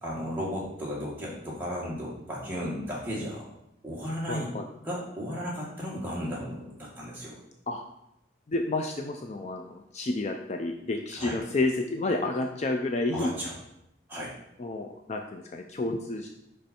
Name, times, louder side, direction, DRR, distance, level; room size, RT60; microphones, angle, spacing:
voice 1, 0.0-3.4 3.8-4.5 4.8-7.4 11.2-11.4 13.1-13.5 14.1-14.3, equal, 10° right, -6 dB, 1.8 m, -34 dB
voice 2, 4.3-4.7 7.7-7.8 8.5-13.3 14.6-16.3, left 2 dB, 35° left, 4 dB, 0.4 m, -30 dB
5.3 x 5.2 x 4.3 m, 0.81 s
head